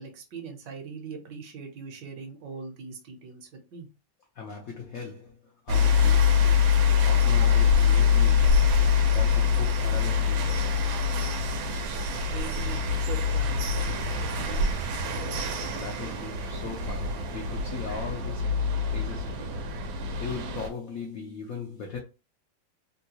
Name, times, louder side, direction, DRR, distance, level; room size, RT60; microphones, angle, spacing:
voice 1, 0.0-3.9 12.3-14.7, right 5 dB, 70° right, 1.3 m, -41 dB
voice 2, 4.3-6.4 7.0-8.7 9.1-11.0 15.7-18.6 18.9-19.8 20.2-22.0, left 5 dB, 75° left, 0.8 m, -39 dB
sound 1, 5.7-20.7, left 6 dB, 85° right, 1.5 m, -24 dB
3.8 x 2.2 x 2.8 m
omnidirectional pair, 2.1 m